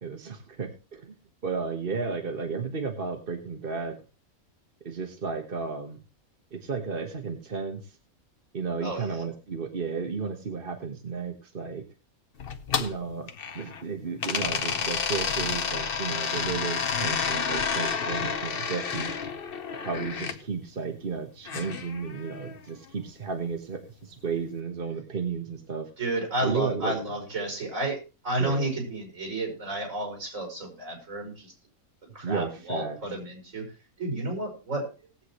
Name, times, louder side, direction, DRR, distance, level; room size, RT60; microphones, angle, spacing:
voice 1, 0.0-1.1 1.4-4.0 4.8-6.0 6.5-8.0 8.5-11.8 12.8-13.3 13.5-19.1 19.8-25.9 26.4-27.0 28.4-28.7 32.2-33.0, right 5 dB, 40° right, 3 dB, 1.4 m, -33 dB
voice 2, 8.8-9.2 26.0-28.0 28.2-31.5 32.1-33.7 34.0-34.9, right 1 dB, 65° right, 1 dB, 5.9 m, -31 dB
sound 1, 12.4-13.8 14.2-20.4 21.5-22.6, left 6 dB, 45° left, 0.9 m, -30 dB
19.0 x 8.3 x 3.1 m, 0.32 s
omnidirectional pair, 1.5 m